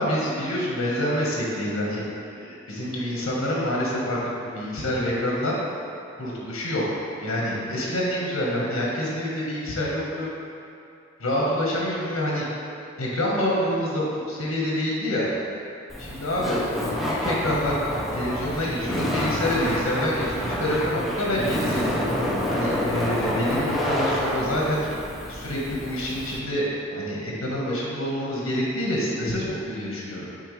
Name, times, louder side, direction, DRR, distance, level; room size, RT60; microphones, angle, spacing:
voice 1, 0.0-5.6 6.2-10.3 11.2-12.4 13.0-15.3 16.1-17.8 18.1-21.8 22.5-24.8 25.3-26.6 26.9-30.3, equal, 75° left, -4 dB, 1.4 m, -27 dB
Laughter, 15.9-26.4, left 1 dB, ahead, 0.7 m, -28 dB
9.0 x 4.1 x 3.2 m, 2.6 s
head